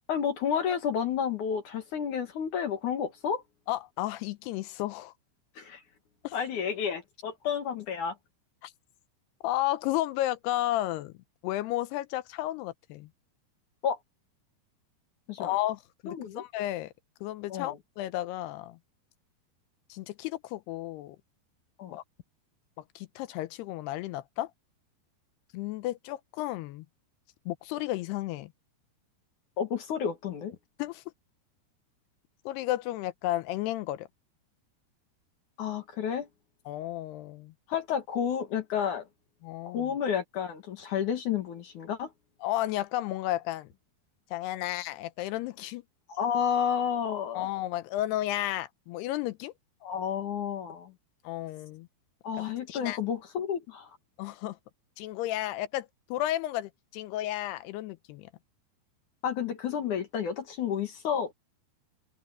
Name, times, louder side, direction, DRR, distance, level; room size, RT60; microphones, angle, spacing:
voice 1, 0.1-3.4 5.6-5.8 6.3-8.1 13.8-14.0 15.3-15.5 16.1-16.4 17.5-17.8 21.8-22.0 29.6-30.6 35.6-36.3 37.7-39.0 39.6-42.1 46.1-47.5 49.8-50.9 52.2-53.9 59.2-61.3, left 8 dB, 55° left, 2.5 m, -31 dB
voice 2, 3.7-5.1 6.2-6.4 8.6-8.7 9.4-11.1 11.4-13.1 15.4-16.9 17.2-18.8 19.9-21.2 21.9-22.0 23.0-24.5 25.5-26.9 27.5-28.5 30.8-31.0 32.5-34.1 36.7-37.5 39.4-39.9 42.4-43.7 44.3-45.8 47.3-49.5 51.2-51.9 52.4-53.0 54.2-54.6 55.0-58.3, left 15 dB, 85° left, 2.6 m, -33 dB
omnidirectional pair, 4.9 m